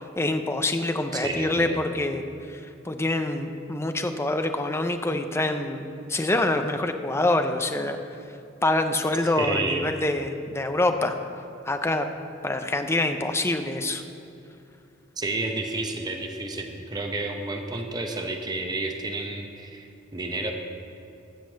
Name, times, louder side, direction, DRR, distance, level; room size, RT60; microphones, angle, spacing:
voice 1, 0.2-2.2 2.5-8.0 8.6-11.2 11.6-12.1 12.4-14.0, left 2 dB, 15° left, 7 dB, 0.6 m, -26 dB
voice 2, 1.1-1.8 9.4-10.0 15.2-20.5, right 2 dB, 20° right, 3 dB, 0.8 m, -30 dB
14.0 x 5.3 x 7.7 m, 2.5 s
head